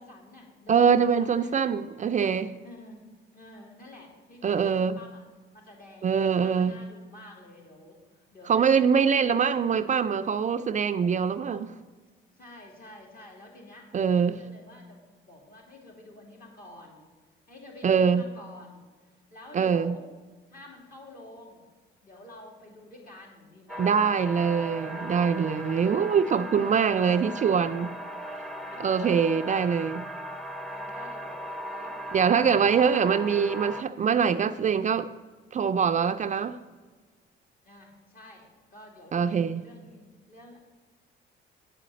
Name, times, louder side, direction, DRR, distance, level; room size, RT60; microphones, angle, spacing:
voice 1, 0.0-1.5 1.9-2.2 2.6-3.0 3.3-5.2 5.5-8.0 8.3-9.4 11.5-12.1 12.4-13.9 14.2-17.1 17.5-18.8 19.3-20.0 20.5-21.6 22.0-24.0 24.8-26.1 26.8-27.2 28.5-29.2 30.7-33.1 33.6-33.7 37.6-40.6, left 1 dB, 45° left, 2.9 m, -49 dB
voice 2, 0.7-2.5 4.4-5.0 6.0-6.7 8.5-11.7 13.9-14.4 17.8-18.2 19.5-19.9 23.8-27.9 28.8-30.1 32.1-35.1 35.5-36.6 39.1-39.6, right 6 dB, 40° right, 0.4 m, -24 dB
sound 1, 23.7-33.8, equal, ahead, 0.7 m, -37 dB
9.0 x 5.0 x 7.6 m
cardioid pair, 90°, 20 cm